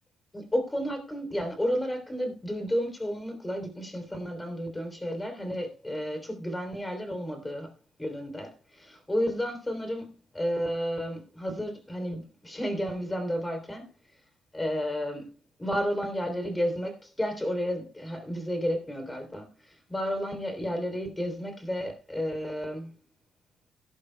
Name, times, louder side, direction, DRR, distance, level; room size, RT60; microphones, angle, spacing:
voice 1, 0.3-7.7 8.0-13.9 14.5-15.3 15.6-22.9, equal, 15° left, 3.1 m, -32 dB
17.0 x 11.0 x 2.2 m
cardioid pair, 90°, 0 cm